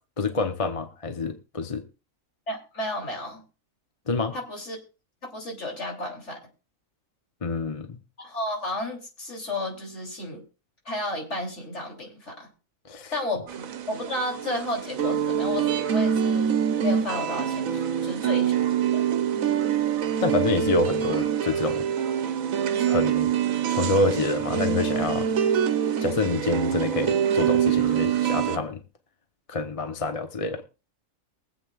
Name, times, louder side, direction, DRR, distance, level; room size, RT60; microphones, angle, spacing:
voice 1, 0.2-1.8 4.1-4.3 7.4-8.0 12.9-13.1 20.2-21.9 22.8-23.3 23.7-25.3 26.0-28.8 29.5-30.6, left 3 dB, 30° left, 0.8 m, -27 dB
voice 2, 2.5-3.4 4.3-4.8 5.2-6.4 8.2-10.4 10.9-12.5 13.1-16.5 16.8-17.7 18.0-19.0, left 2 dB, 60° left, 3.4 m, -32 dB
sound 1, 13.5-28.6, right 9 dB, 85° right, 1.2 m, -25 dB
23.5 x 8.1 x 2.4 m
omnidirectional pair, 1.4 m